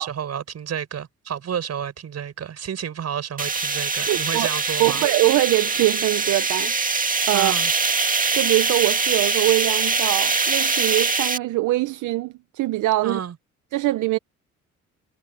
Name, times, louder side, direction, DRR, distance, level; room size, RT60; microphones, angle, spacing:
voice 1, 0.0-5.0 7.3-7.7 13.0-13.3, right 8 dB, 55° right, 6.3 m, -30 dB
sound 1, 3.4-11.4, right 4 dB, 25° right, 1.9 m, -23 dB
voice 2, 4.1-4.5 4.8-6.7 7.3-7.5 8.3-13.2 13.7-14.2, right 18 dB, 80° right, 0.7 m, -22 dB
cardioid pair, 90°, 30 cm